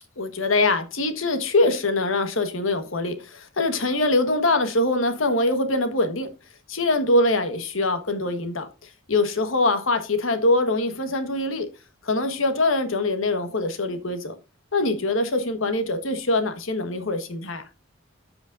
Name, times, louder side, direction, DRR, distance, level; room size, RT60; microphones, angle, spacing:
voice 1, 0.2-6.3 6.7-8.7 9.1-11.7 12.0-14.4 14.7-17.6, left 2 dB, 75° left, 1.4 m, -23 dB
14.0 x 5.1 x 2.5 m
head